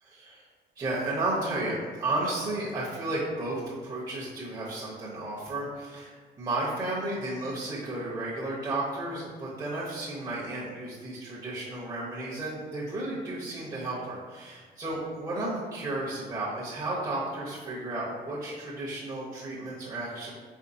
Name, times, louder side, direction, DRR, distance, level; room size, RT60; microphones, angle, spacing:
voice 1, 0.0-0.5 0.8-20.3, right 2 dB, 25° right, -6 dB, 0.9 m, -33 dB
4.5 x 3.3 x 2.7 m, 1.5 s
cardioid pair, 110°, 17 cm